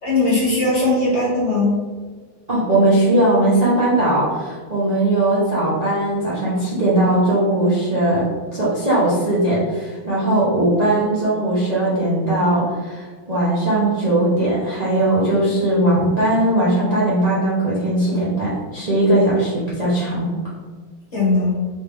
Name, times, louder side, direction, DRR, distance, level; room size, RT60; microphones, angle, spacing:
voice 1, 0.0-1.7 21.1-21.5, left 2 dB, 40° left, -6 dB, 1.3 m, -19 dB
voice 2, 2.5-8.2 8.5-20.3, right 1 dB, 45° right, -9 dB, 0.5 m, -19 dB
3.7 x 3.2 x 3.4 m, 1.5 s
omnidirectional pair, 2.3 m